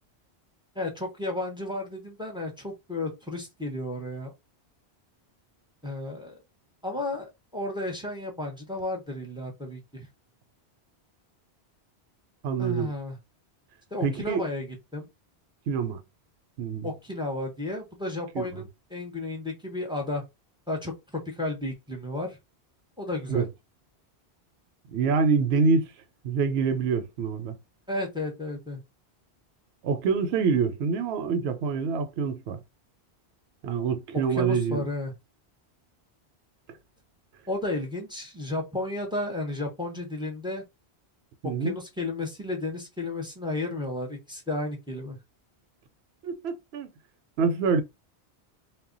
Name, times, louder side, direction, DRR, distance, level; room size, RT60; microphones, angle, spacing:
voice 1, 0.7-4.3 5.8-6.4 6.8-10.1 12.6-13.2 13.9-15.1 16.8-20.2 20.7-22.4 23.0-23.5 27.9-28.8 34.3-35.1 37.5-40.6 41.4-45.2, left 2 dB, 5° right, 0.6 m, -33 dB
voice 2, 12.4-12.9 14.0-14.4 15.7-16.0 16.6-16.9 18.3-18.6 23.3-23.5 24.9-25.9 26.2-27.6 29.8-32.6 33.6-34.8 41.4-41.8 46.2-46.9 47.4-47.8, right 5 dB, 75° right, 0.8 m, -26 dB
2.1 x 2.1 x 3.7 m
omnidirectional pair, 1.1 m